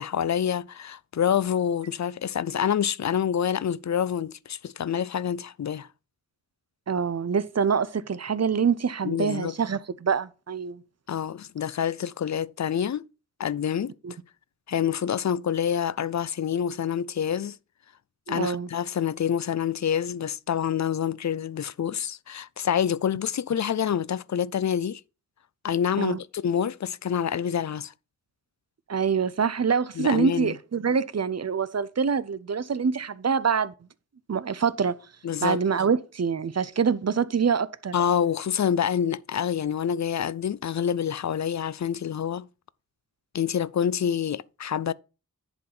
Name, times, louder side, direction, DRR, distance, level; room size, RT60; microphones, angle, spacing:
voice 1, 0.0-5.9 9.0-9.5 11.1-13.0 13.4-13.9 14.7-17.6 18.3-25.0 25.6-27.9 30.0-30.6 35.2-35.6 37.9-42.5 43.3-44.9, left 8 dB, 60° left, 0.4 m, -27 dB
voice 2, 6.9-10.8 14.0-14.1 18.3-18.7 26.0-26.2 28.9-33.7 34.3-35.0 35.4-37.9, right 6 dB, 55° right, 0.6 m, -25 dB
10.5 x 3.9 x 5.9 m
wide cardioid pair, 70°, 31 cm